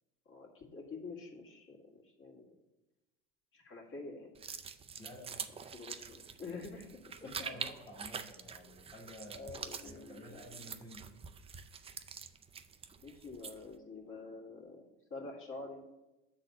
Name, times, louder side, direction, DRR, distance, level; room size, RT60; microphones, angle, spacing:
voice 1, 0.3-2.5 3.5-4.3 5.7-7.3 9.3-10.6 13.0-15.8, left 3 dB, 45° left, -1 dB, 1.9 m, -47 dB
sound 1, 4.3-13.7, right 6 dB, 20° right, 0.4 m, -46 dB
voice 2, 5.0-5.5 7.2-11.2, left 1 dB, 15° left, -3 dB, 1.2 m, -52 dB
6.8 x 4.1 x 6.5 m, 1.0 s
supercardioid pair, 105°, 29 cm